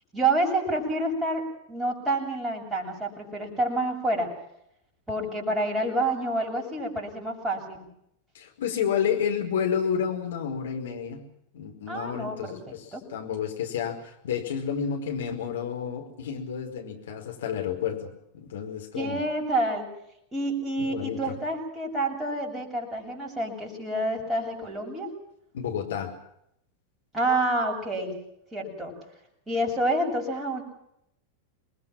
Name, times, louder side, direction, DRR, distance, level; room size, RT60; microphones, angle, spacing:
voice 1, 0.1-4.3 5.1-7.8 11.9-13.0 18.9-19.9 20.3-25.1 27.1-28.2 28.5-28.9 29.5-30.6, right 1 dB, 10° right, -1 dB, 7.9 m, -28 dB
voice 2, 8.3-11.2 11.5-12.8 13.1-19.2 20.8-21.3 25.5-26.1, left 7 dB, 60° left, 3 dB, 5.0 m, -30 dB
28.5 x 21.0 x 6.0 m, 0.76 s
figure-of-eight pair, 90°, 0 cm